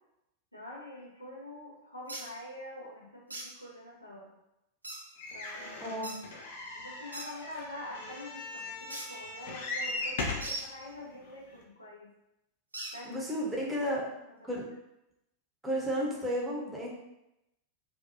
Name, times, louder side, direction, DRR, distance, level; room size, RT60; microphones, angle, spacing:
voice 1, 0.5-4.3 5.3-6.2 6.7-12.1 12.9-13.5 13.8-14.0 14.4-14.5, left 1 dB, 85° left, -4 dB, 0.7 m, -46 dB
sound 1, 2.1-2.2 3.3-3.5 4.8-5.0 6.0-6.2 7.1-7.3 8.9-9.1 10.4-10.7 12.7-12.9, right 2 dB, 80° right, 0.4 m, -39 dB
sound 2, 5.2-10.6 11.3-11.4 11.6-11.7, left 2 dB, 55° left, 0.4 m, -38 dB
voice 2, 5.8-6.1 13.1-14.0 14.4-14.6 15.6-16.9, equal, 5° right, -4 dB, 0.7 m, -32 dB
2.6 x 2.3 x 2.7 m, 0.87 s
figure-of-eight pair, 90°, 0 cm